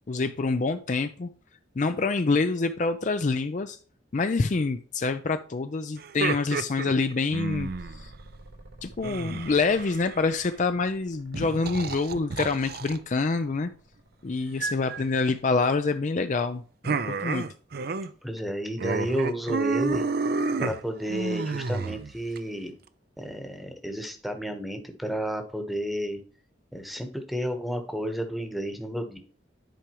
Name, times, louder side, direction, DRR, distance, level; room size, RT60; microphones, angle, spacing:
voice 1, 0.1-1.3 1.8-3.8 4.1-8.1 8.8-13.7 14.2-17.4, left 3 dB, 40° left, 9 dB, 0.4 m, -26 dB
sound 1, 6.0-8.0 9.0-10.4 11.3-13.0 14.6-15.0 16.8-18.1 18.4-18.5 18.8-22.4, right 4 dB, 50° right, 0.5 m, -30 dB
sound 2, 7.5-16.0 18.3-22.8, right 1 dB, 85° right, 3.5 m, -53 dB
voice 2, 18.2-20.1 20.6-22.7 23.2-26.2 26.7-29.2, equal, ahead, 6 dB, 1.1 m, -31 dB
10.5 x 4.9 x 3.0 m, 0.43 s
head